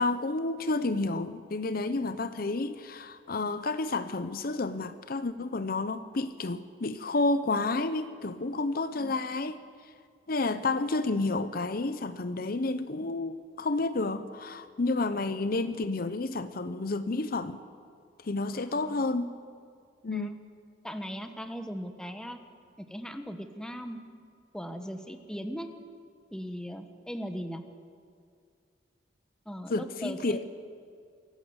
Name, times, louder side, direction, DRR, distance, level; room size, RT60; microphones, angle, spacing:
voice 1, 0.0-9.6 10.3-17.6 18.2-19.3 20.0-20.3 29.7-30.4, left 3 dB, 55° left, 0.7 m, -30 dB
voice 2, 18.5-19.0 20.1-20.3 20.8-22.4 22.8-24.0 24.5-25.7 26.3-27.6 29.4-30.4, equal, 5° left, 1.2 m, -39 dB
24.5 x 14.5 x 8.0 m
head